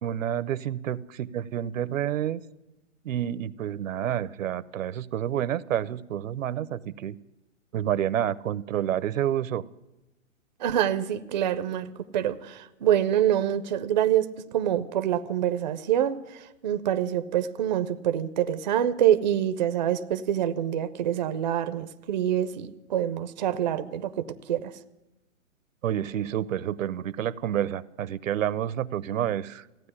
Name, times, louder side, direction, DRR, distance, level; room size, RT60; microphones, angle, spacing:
voice 1, 0.0-2.4 3.0-7.2 7.7-9.6 25.8-29.9, right 10 dB, 70° right, 18 dB, 0.7 m, -29 dB
voice 2, 10.6-11.9 12.1-14.3 14.5-16.2 16.6-24.1 24.5-24.7, right 10 dB, 35° right, 11 dB, 0.5 m, -25 dB
15.5 x 9.4 x 9.8 m, 0.99 s
hypercardioid pair, 160°, 40 cm